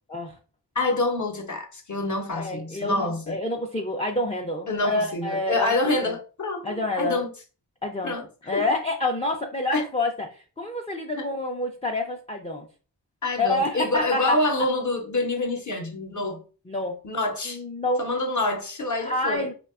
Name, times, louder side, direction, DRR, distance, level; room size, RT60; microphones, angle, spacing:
voice 1, 0.8-3.4 4.7-7.3 8.0-8.2 8.5-8.6 9.7-9.8 11.2-11.3 13.2-16.4 17.0-17.6 18.0-19.5, left 2 dB, 40° left, 0.7 m, -27 dB
voice 2, 2.3-6.1 6.6-7.2 7.8-8.1 8.5-12.7 13.4-14.4 16.7-17.0 17.5-18.1 19.0-19.5, left 2 dB, 15° left, 0.3 m, -28 dB
2.7 x 2.2 x 2.3 m
cardioid pair, 40°, 45 cm